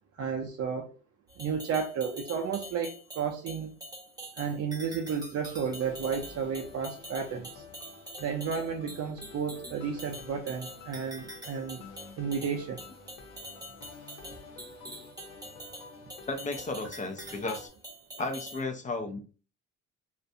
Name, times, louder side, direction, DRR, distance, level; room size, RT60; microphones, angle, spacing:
voice 1, 0.2-0.9 1.4-3.7 4.4-7.6 8.2-11.8 12.2-12.8, right 6 dB, 55° right, 0.5 m, -32 dB
sound 1, 1.3-18.6, equal, 15° right, 0.9 m, -45 dB
sound 2, 5.4-17.7, left 3 dB, 90° left, 0.7 m, -50 dB
voice 2, 16.3-17.7 18.2-19.2, left 3 dB, 25° left, 0.5 m, -34 dB
2.4 x 2.1 x 2.6 m
cardioid pair, 90°, 30 cm